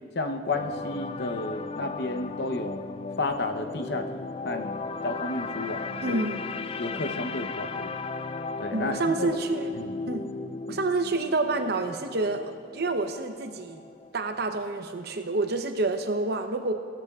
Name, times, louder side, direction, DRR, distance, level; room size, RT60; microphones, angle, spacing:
voice 1, 0.1-2.9 3.2-4.8 5.0-6.2 6.8-7.9 8.6-9.3 9.8-9.9, left 2 dB, 65° left, 6 dB, 0.8 m, -32 dB
sound 1, 0.5-14.7 15.0-15.2, left 4 dB, 30° left, 0.3 m, -36 dB
voice 2, 6.0-6.5 8.7-9.7 10.1-10.3 10.7-13.8 14.1-16.7, right 3 dB, 60° right, 6 dB, 0.8 m, -28 dB
17.0 x 13.0 x 2.4 m, 2.1 s
head